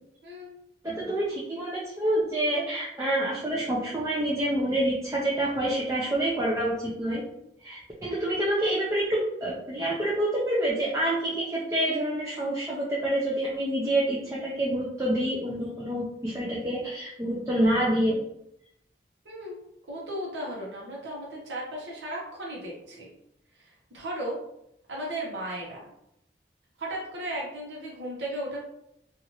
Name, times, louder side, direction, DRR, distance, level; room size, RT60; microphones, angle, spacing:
voice 1, 0.2-0.5 19.2-19.6 19.9-23.1 23.5-24.4 24.9-25.9 26.8-28.6, right 1 dB, 90° right, -4 dB, 0.8 m, -35 dB
voice 2, 0.8-7.2 7.6-18.2, right 1 dB, 20° right, -5 dB, 0.4 m, -27 dB
2.9 x 2.4 x 2.8 m, 0.78 s
head